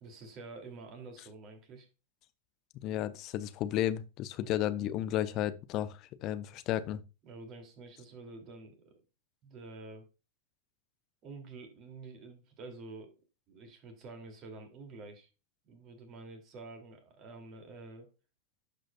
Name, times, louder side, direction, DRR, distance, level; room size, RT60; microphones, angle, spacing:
voice 1, 0.0-1.9 4.4-4.5 7.2-8.9 9.4-10.1 11.2-13.1 13.5-15.3 15.7-18.1, right 3 dB, 35° right, 2.7 m, -48 dB
voice 2, 2.8-7.0, left 12 dB, 40° left, 0.7 m, -33 dB
12.0 x 5.1 x 2.4 m
figure-of-eight pair, 95°, 0 cm